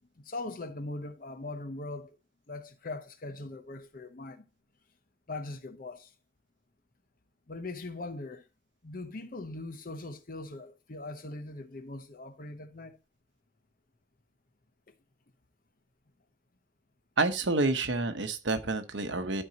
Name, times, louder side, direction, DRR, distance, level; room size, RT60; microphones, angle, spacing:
voice 1, 0.2-2.2 2.5-4.4 5.3-6.1 7.5-8.4 8.8-13.0, left 2 dB, 45° left, 0.8 m, -40 dB
voice 2, 17.2-19.4, right 3 dB, 70° right, 1.0 m, -28 dB
12.0 x 4.5 x 2.9 m
head